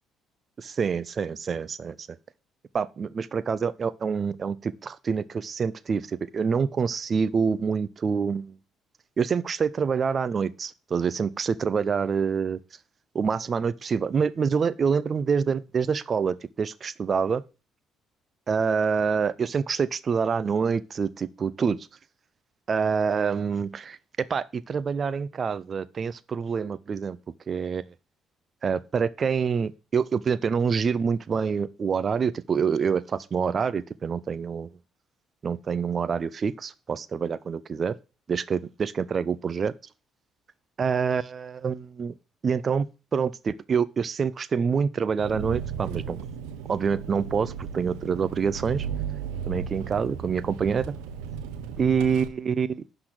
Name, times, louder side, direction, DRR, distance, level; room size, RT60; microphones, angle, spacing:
voice 1, 0.6-2.1 2.7-8.6 9.2-12.6 13.1-17.4 18.5-21.8 22.7-24.0 24.3-27.2 27.5-27.8 28.6-34.7 35.4-37.9 38.3-39.7 40.8-42.1 42.4-42.9 43.1-46.2 46.7-48.9 49.5-50.9 51.8-52.8, right 6 dB, 45° right, 0.5 m, -26 dB
Engine, 45.2-52.3, right 7 dB, 75° right, 1.0 m, -35 dB
11.5 x 4.0 x 6.4 m
hypercardioid pair, 50°, 0 cm